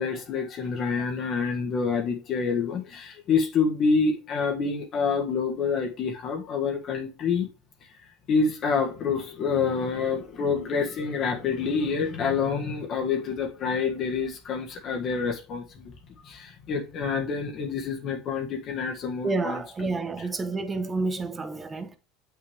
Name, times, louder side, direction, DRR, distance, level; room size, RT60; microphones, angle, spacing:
voice 1, 0.0-7.5 8.3-15.9 16.2-19.6, left 5 dB, 40° left, 1.5 m, -27 dB
voice 2, 19.2-22.0, right 3 dB, 15° right, 0.9 m, -29 dB
8.1 x 5.9 x 3.3 m
cardioid pair, 145°, 0 cm